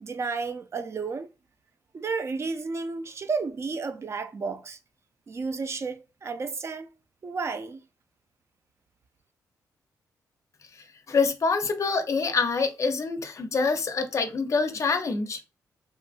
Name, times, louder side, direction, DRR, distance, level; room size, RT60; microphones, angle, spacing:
voice 1, 0.0-1.3 1.9-4.8 5.3-6.9 7.2-7.8, right 4 dB, 40° right, 0.4 m, -32 dB
voice 2, 11.1-15.4, left 4 dB, 45° left, 0.5 m, -26 dB
2.8 x 2.5 x 2.3 m
cardioid pair, 70°, 7 cm